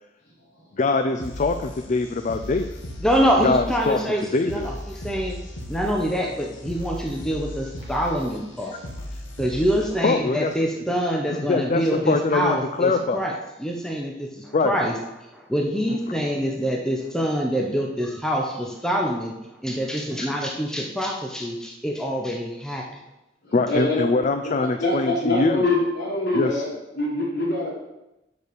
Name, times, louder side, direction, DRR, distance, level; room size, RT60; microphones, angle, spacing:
voice 1, 0.8-2.7 3.4-4.0 4.3-4.7 10.0-10.5 11.3-13.2 14.5-14.8 15.9-16.0 23.5-25.6 26.3-26.6, left 3 dB, 40° left, 8 dB, 0.4 m, -23 dB
sound 1, 1.2-10.2, left 1 dB, 85° left, 1.5 m, -37 dB
voice 2, 3.0-5.4 5.7-8.8 9.4-13.3 13.6-14.9 15.3-19.4 19.6-22.8, equal, 5° left, 0 dB, 0.9 m, -25 dB
voice 3, 23.4-24.0 24.4-27.7, left 2 dB, 65° left, -5 dB, 3.4 m, -24 dB
6.1 x 5.4 x 6.9 m, 0.93 s
head